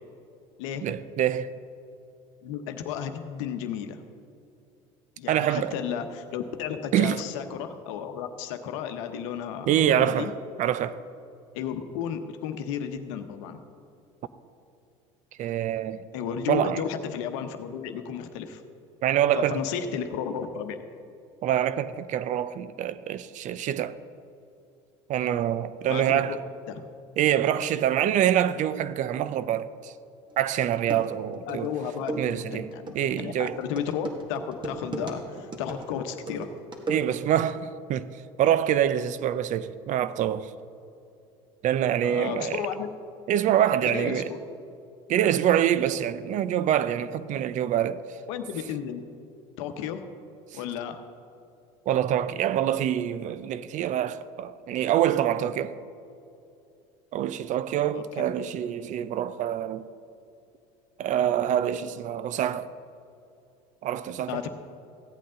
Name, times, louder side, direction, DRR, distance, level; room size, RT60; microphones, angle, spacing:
voice 1, 0.8-1.5 5.3-5.8 6.9-7.2 9.7-10.3 10.6-11.0 15.4-16.0 16.5-16.8 19.0-19.6 21.4-24.0 25.1-26.4 27.2-29.9 30.4-31.7 32.2-32.7 32.9-33.6 36.9-40.5 41.6-42.6 43.3-44.3 45.1-48.0 51.9-55.8 57.1-59.9 61.0-62.7 63.8-64.4, right 10 dB, 50° right, 0.6 m, -25 dB
voice 2, 2.4-4.0 5.2-10.3 11.5-13.6 16.1-18.6 19.4-20.8 25.9-26.4 26.7-26.8 31.5-36.6 42.0-42.9 43.9-44.4 48.3-49.0 49.6-50.0 50.5-51.0 57.9-58.3 64.3-64.5, left 8 dB, 80° left, 0.9 m, -33 dB
sound 1, 30.3-30.4 30.7-37.4, right 2 dB, 30° right, 1.9 m, -36 dB
15.5 x 8.6 x 3.8 m
supercardioid pair, 80°, 16 cm